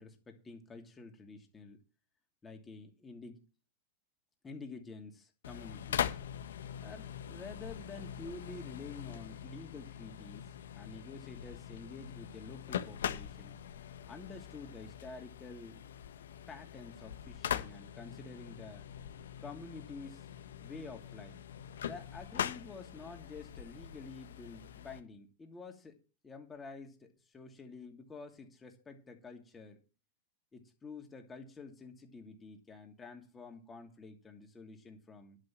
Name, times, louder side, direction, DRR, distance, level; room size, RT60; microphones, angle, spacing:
voice 1, 0.0-1.8 2.4-3.4 4.4-6.2 6.8-13.6 14.1-15.8 16.5-18.9 19.4-20.3 20.6-21.4 21.8-26.0 26.2-29.8 30.5-35.4, left 4 dB, 15° left, 2.8 m, -49 dB
sound 1, 5.4-25.0, left 9 dB, 85° left, 1.4 m, -42 dB
11.0 x 6.5 x 7.6 m
hypercardioid pair, 120°, 0 cm